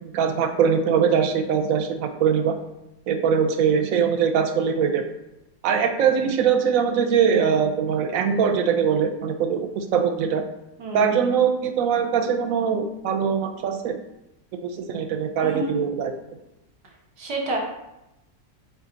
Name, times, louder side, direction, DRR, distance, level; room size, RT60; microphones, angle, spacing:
voice 1, 0.0-2.6 3.1-5.1 5.6-10.4 10.9-14.0 14.5-16.1, right 7 dB, 65° right, 6 dB, 1.0 m, -22 dB
voice 2, 10.8-11.1 15.4-15.9 17.2-17.6, right 1 dB, 80° right, -1 dB, 1.9 m, -29 dB
7.6 x 3.8 x 3.9 m, 0.91 s
omnidirectional pair, 1.7 m